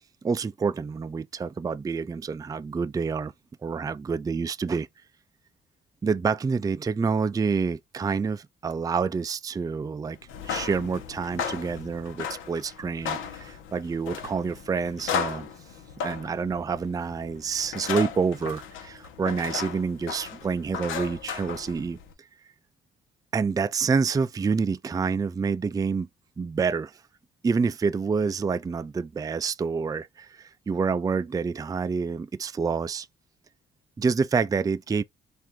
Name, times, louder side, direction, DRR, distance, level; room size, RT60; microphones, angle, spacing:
voice 1, 0.2-3.3 3.6-4.9 6.0-10.2 10.4-15.5 16.0-22.0 23.3-26.1 26.4-27.0 27.4-33.1 34.0-35.0, right 5 dB, 20° right, 0.4 m, -28 dB
sound 1, 10.2-22.1, left 7 dB, 85° left, 1.0 m, -35 dB
4.4 x 2.6 x 3.7 m
cardioid pair, 90°, 20 cm